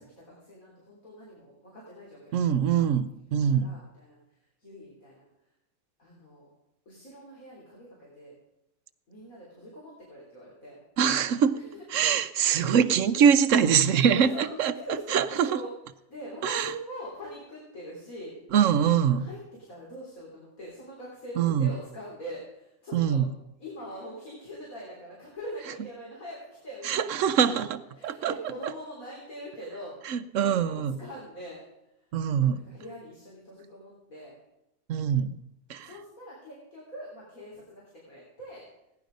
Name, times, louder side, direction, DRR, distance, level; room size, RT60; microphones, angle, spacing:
voice 1, 0.0-2.9 3.5-4.2 4.6-5.2 6.0-6.5 6.9-8.3 9.1-10.8 11.5-12.3 13.1-15.7 16.1-18.3 19.1-19.4 19.7-23.2 23.6-27.6 27.9-30.0 30.4-31.6 32.5-34.4 35.8-38.6, equal, 70° left, -5 dB, 4.0 m, -43 dB
voice 2, 2.3-3.7 11.0-11.6 11.9-14.7 15.1-15.6 16.4-16.7 18.5-19.3 21.4-21.7 22.9-23.3 26.8-27.7 28.0-28.3 28.6-28.7 30.1-31.0 32.1-32.6 34.9-35.4 35.7-35.9, right 8 dB, 65° right, 12 dB, 1.0 m, -23 dB
16.5 x 11.0 x 5.2 m, 0.87 s
omnidirectional pair, 1.5 m